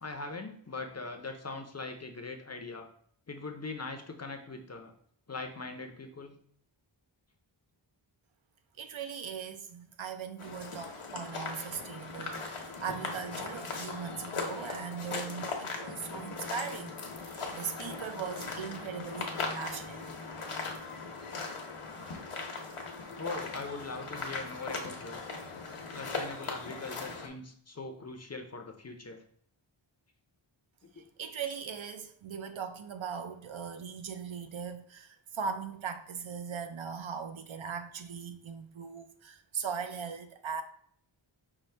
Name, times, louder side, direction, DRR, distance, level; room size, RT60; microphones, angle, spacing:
voice 1, 0.0-2.9 3.3-4.9 5.3-6.4 23.2-25.2 25.9-29.2 30.9-31.0, left 3 dB, 35° left, 0.5 m, -41 dB
voice 2, 8.8-20.1 31.0-40.6, right 6 dB, 70° right, 0.6 m, -39 dB
sound 1, 10.4-27.3, left 4 dB, 80° left, 0.8 m, -39 dB
5.5 x 2.0 x 3.2 m
wide cardioid pair, 65°, 50 cm